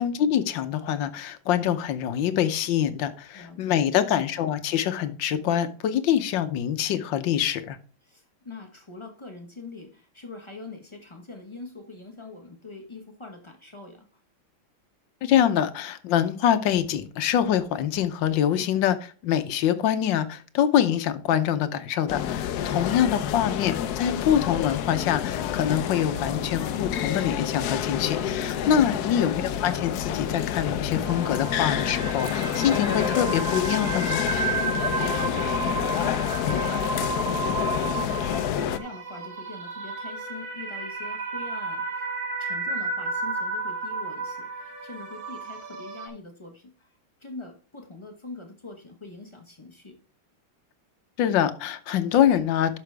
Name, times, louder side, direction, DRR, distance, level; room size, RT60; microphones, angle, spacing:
voice 1, 0.0-7.8 15.2-34.2 51.2-52.8, left 10 dB, 65° left, 1.4 m, -25 dB
voice 2, 3.3-3.9 8.0-14.1 22.8-22.9 34.6-37.7 37.9-42.1 42.4-46.9 47.2-50.0, left 3 dB, 25° left, 0.7 m, -43 dB
sound 1, 22.1-38.8, left 10 dB, 80° left, 0.8 m, -28 dB
sound 2, 25.7-32.9, right 8 dB, 75° right, 2.0 m, -44 dB
sound 3, 31.0-46.1, right 4 dB, 60° right, 2.6 m, -32 dB
11.5 x 6.0 x 3.4 m
omnidirectional pair, 2.4 m